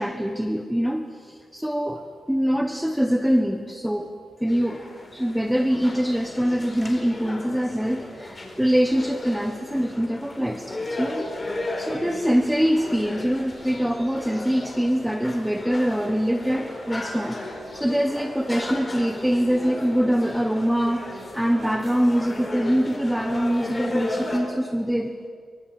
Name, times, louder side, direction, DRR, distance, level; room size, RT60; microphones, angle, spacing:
voice 1, 0.0-4.1 4.4-4.8 5.1-11.3 11.6-17.4 17.7-25.3, equal, 5° right, 6 dB, 1.2 m, -24 dB
sound 1, 4.5-24.4, left 2 dB, 20° left, 4.6 m, -35 dB
24.5 x 22.5 x 8.7 m, 2.1 s
wide cardioid pair, 125°, 0 cm